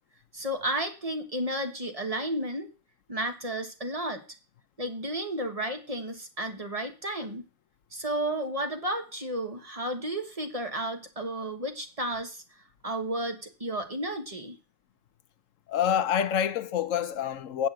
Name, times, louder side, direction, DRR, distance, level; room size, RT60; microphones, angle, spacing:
voice 1, 0.3-2.7 3.1-4.2 4.8-7.4 7.9-12.4 12.8-14.6, right 1 dB, 25° right, 1.3 m, -32 dB
voice 2, 15.7-17.7, left 9 dB, 60° left, 1.1 m, -27 dB
8.9 x 5.8 x 7.7 m
omnidirectional pair, 1.6 m